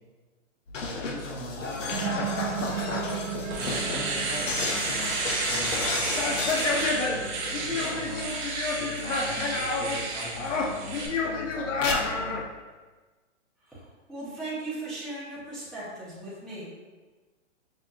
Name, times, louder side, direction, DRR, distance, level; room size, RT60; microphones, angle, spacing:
sound 1, 0.7-10.0 10.3-12.4, left 3 dB, 85° left, 0.7 m, -30 dB
voice 1, 0.8-3.2 3.5-12.4, left 2 dB, 55° left, -6 dB, 1.3 m, -41 dB
sound 2, 1.9-8.3, right 7 dB, 85° right, 0.6 m, -36 dB
Domestic sounds home sounds, 2.8-2.9 3.3-11.1, right 3 dB, 40° right, 0.8 m, -32 dB
voice 2, 13.6-16.7, right 2 dB, ahead, -11 dB, 0.7 m, -38 dB
5.4 x 2.4 x 2.3 m, 1.3 s
hypercardioid pair, 140°, 37 cm